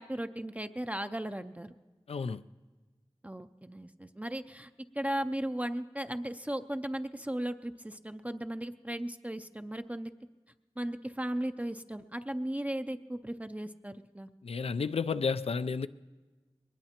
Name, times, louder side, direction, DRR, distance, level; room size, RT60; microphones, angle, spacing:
voice 1, 0.0-1.7 3.2-4.7 5.0-10.1 10.8-14.3, right 1 dB, 15° right, 0.4 m, -36 dB
voice 2, 2.1-2.4 14.4-15.9, left 5 dB, 85° left, 0.4 m, -31 dB
22.0 x 19.5 x 2.9 m
wide cardioid pair, 55°, 10 cm